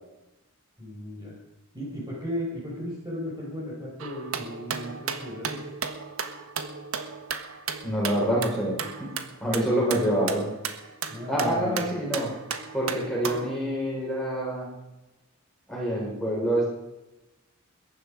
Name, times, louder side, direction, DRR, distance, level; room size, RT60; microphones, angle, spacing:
voice 1, 0.8-1.3 1.7-5.6 9.8-9.9 11.1-11.8, equal, 15° right, -3 dB, 4.6 m, -35 dB
sound 1, 4.0-13.6, right 6 dB, 70° right, 1.4 m, -35 dB
voice 2, 7.8-8.7 9.0-9.1 9.4-10.5 11.3-12.3 12.7-14.7 15.7-16.7, right 1 dB, ahead, -4 dB, 5.3 m, -26 dB
21.5 x 11.0 x 5.1 m, 0.99 s
head